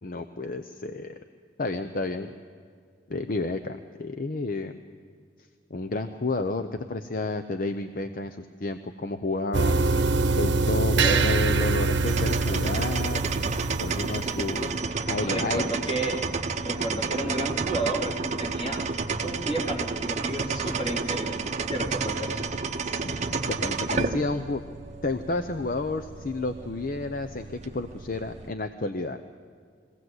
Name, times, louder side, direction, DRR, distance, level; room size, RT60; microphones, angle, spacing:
voice 1, 0.0-1.2 1.6-2.3 3.1-4.8 5.7-9.8 10.4-13.2 13.8-14.8 15.1-15.6 22.8-24.6 25.0-29.2, left 2 dB, 50° left, 8 dB, 0.7 m, -31 dB
sound 1, 9.5-14.7, right 3 dB, 80° right, 0.9 m, -24 dB
voice 2, 11.0-11.3 14.3-14.4 15.2-16.2 16.6-18.8 19.2-21.4 21.7-22.4, right 2 dB, 30° left, -1 dB, 3.2 m, -32 dB
sound 2, 12.1-28.5, right 4 dB, 40° right, 0.7 m, -31 dB
22.5 x 16.5 x 7.9 m, 2.2 s
head